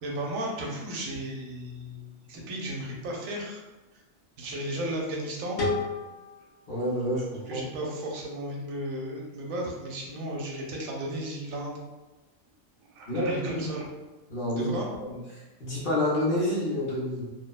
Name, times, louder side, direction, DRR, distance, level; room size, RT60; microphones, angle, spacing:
voice 1, 0.0-3.6 4.4-5.6 7.5-11.8 13.0-13.9 14.5-14.9, right 1 dB, 80° right, -2 dB, 1.0 m, -34 dB
sound 1, 5.6-8.4, left 3 dB, 85° left, 1.2 m, -35 dB
voice 2, 6.7-7.6 13.1-13.7 14.3-15.2 15.6-17.3, left 1 dB, 50° left, -6 dB, 0.7 m, -28 dB
2.9 x 2.1 x 2.2 m, 1.1 s
omnidirectional pair, 1.4 m